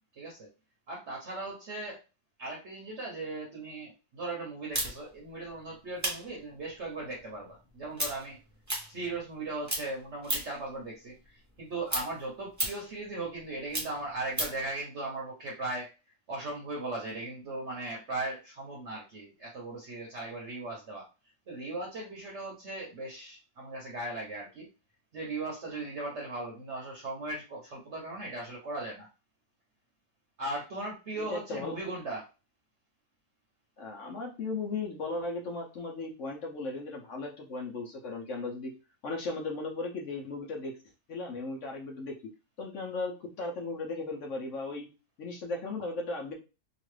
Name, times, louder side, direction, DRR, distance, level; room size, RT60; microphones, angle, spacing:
voice 1, 0.1-0.5 0.9-2.0 2.4-8.4 8.9-15.9 16.3-21.1 21.5-24.7 25.1-29.1 30.4-32.3, right 2 dB, 55° right, -2 dB, 1.0 m, -38 dB
sound 1, 4.7-9.4 9.6-10.7 11.0-14.7, right 1 dB, 15° right, 0.6 m, -35 dB
voice 2, 31.2-31.7 33.8-38.7 39.0-40.7 41.1-42.2 42.6-44.9 45.2-46.3, left 3 dB, 60° left, 1 dB, 0.9 m, -36 dB
2.9 x 2.4 x 3.1 m, 0.30 s
omnidirectional pair, 1.6 m